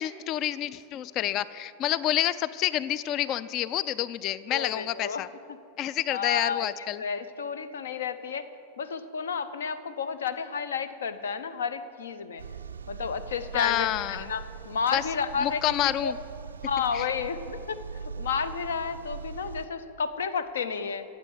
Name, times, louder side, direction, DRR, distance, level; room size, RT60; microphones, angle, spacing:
voice 1, 0.0-5.3 5.8-7.0 13.5-14.3 14.9-15.0 15.4-16.2 16.9-17.0, left 12 dB, 35° left, 17 dB, 0.4 m, -28 dB
voice 2, 4.5-5.2 5.5-8.5 8.8-12.4 12.9-16.1 16.6-21.0, left 6 dB, 65° left, 13 dB, 0.7 m, -32 dB
sound 1, 12.4-19.7, right 6 dB, 70° right, 0.3 m, -41 dB
15.0 x 8.2 x 8.1 m, 2.7 s
figure-of-eight pair, 90°, 0 cm